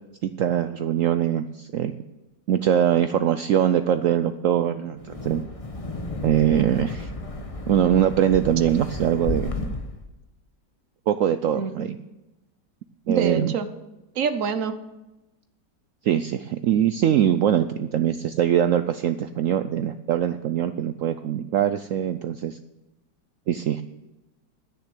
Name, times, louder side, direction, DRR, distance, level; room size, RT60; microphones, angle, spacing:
voice 1, 0.2-1.9 2.5-5.4 6.2-7.1 7.7-9.5 11.1-12.0 13.1-13.5 16.0-22.6 23.5-23.8, right 10 dB, 85° right, 11 dB, 0.7 m, -22 dB
Wind, 5.0-10.0, left 2 dB, 25° left, 0.9 m, -33 dB
voice 2, 11.5-11.9 13.1-13.7 14.2-14.7, right 6 dB, 55° right, 10 dB, 1.2 m, -26 dB
10.5 x 9.7 x 7.6 m, 1.0 s
omnidirectional pair, 1.9 m